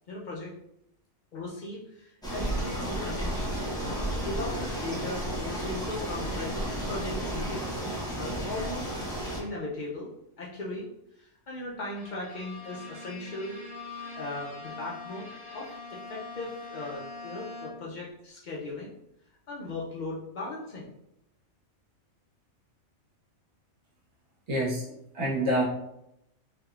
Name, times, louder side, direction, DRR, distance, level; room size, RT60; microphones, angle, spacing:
voice 1, 0.1-0.5 1.3-3.7 4.2-7.8 8.2-8.9 9.4-10.1 10.4-10.9 11.2-13.6 14.1-15.3 15.5-15.7 16.1-18.9 19.5-20.9, left 2 dB, 90° left, -4 dB, 0.4 m, -38 dB
sound 1, 2.2-9.4, right 1 dB, 5° left, 0.6 m, -32 dB
Bowed string instrument, 11.9-18.0, left 3 dB, 40° left, 1.1 m, -43 dB
voice 2, 24.5-25.6, right 1 dB, 45° right, -6 dB, 1.2 m, -27 dB
3.4 x 2.8 x 2.3 m, 0.81 s
omnidirectional pair, 1.5 m